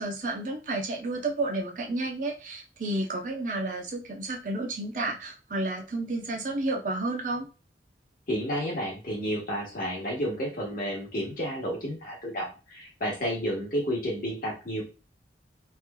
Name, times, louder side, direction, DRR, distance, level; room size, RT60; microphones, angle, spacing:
voice 1, 0.0-7.5, right 2 dB, 45° right, 1 dB, 0.6 m, -31 dB
voice 2, 8.3-14.8, equal, 50° left, -2 dB, 1.2 m, -31 dB
3.3 x 2.9 x 2.2 m, 0.32 s
head